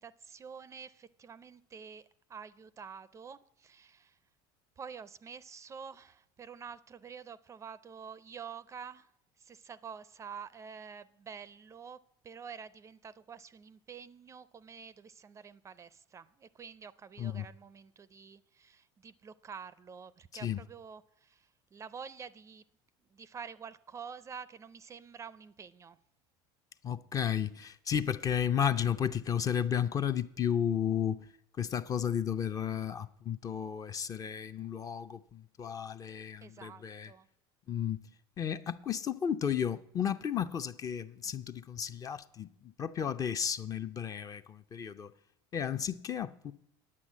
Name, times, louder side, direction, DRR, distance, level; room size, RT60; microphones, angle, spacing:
voice 1, 0.0-4.2 4.8-9.1 9.4-22.6 23.1-26.0 36.4-37.3, right 6 dB, 25° right, 0.4 m, -48 dB
voice 2, 26.8-31.3 31.6-37.1 37.7-38.1 38.4-45.1 45.5-46.5, left 8 dB, 30° left, 0.5 m, -33 dB
9.8 x 8.4 x 7.4 m
supercardioid pair, 120°, 12 cm